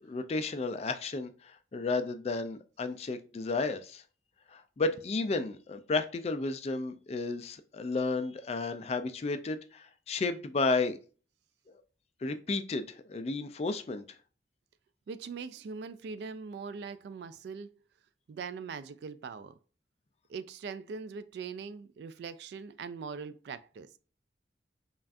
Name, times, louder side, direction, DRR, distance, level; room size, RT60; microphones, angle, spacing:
voice 1, 0.0-4.0 4.5-11.0 12.2-14.0, left 3 dB, 35° left, 0.3 m, -32 dB
voice 2, 15.1-17.7 18.3-19.6 20.3-23.9, right 5 dB, 70° right, 0.3 m, -41 dB
5.5 x 2.4 x 2.5 m
head